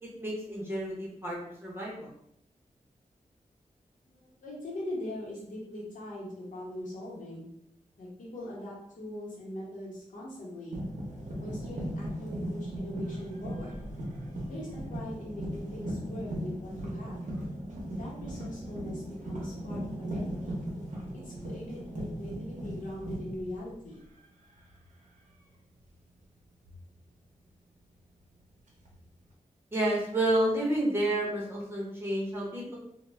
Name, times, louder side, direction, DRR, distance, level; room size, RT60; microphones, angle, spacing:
voice 1, 0.0-2.1 29.7-32.7, right 1 dB, 15° right, -5 dB, 0.8 m, -30 dB
voice 2, 4.0-7.5 8.0-10.8 11.4-13.8 14.5-17.3 17.9-20.6 21.1-24.0, left 1 dB, 80° left, -5 dB, 1.0 m, -41 dB
sound 1, 10.7-24.2 24.5-24.9 26.6-26.8 28.7-29.3, equal, 70° right, 0.7 m, -37 dB
2.3 x 2.1 x 3.2 m, 0.74 s
wide cardioid pair, 155°, 13 cm